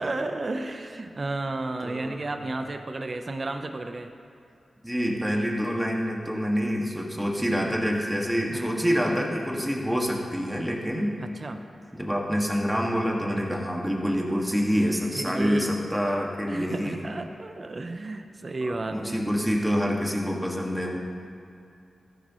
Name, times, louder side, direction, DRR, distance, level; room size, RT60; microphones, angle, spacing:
voice 1, 0.0-4.1 8.5-9.0 11.2-11.6 14.7-15.8 16.5-19.2, right 2 dB, 45° right, 6 dB, 0.8 m, -33 dB
voice 2, 1.8-2.3 4.8-11.2 11.9-17.1 18.7-21.0, equal, 5° right, -1 dB, 2.0 m, -27 dB
14.5 x 13.5 x 3.2 m, 2.6 s
cardioid pair, 65°, 0 cm